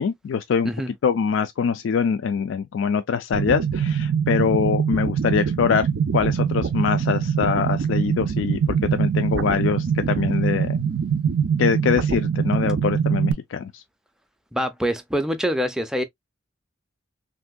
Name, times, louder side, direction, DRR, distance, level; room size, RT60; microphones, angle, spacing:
voice 1, 0.0-0.7 1.0-5.9 6.1-8.6 8.9-10.8 11.6-13.8, left 6 dB, 85° left, 0.3 m, -23 dB
sound 1, 3.3-13.3, right 7 dB, 85° right, 0.4 m, -23 dB
voice 2, 14.5-16.0, equal, 5° right, 0.4 m, -25 dB
3.3 x 2.7 x 2.2 m
head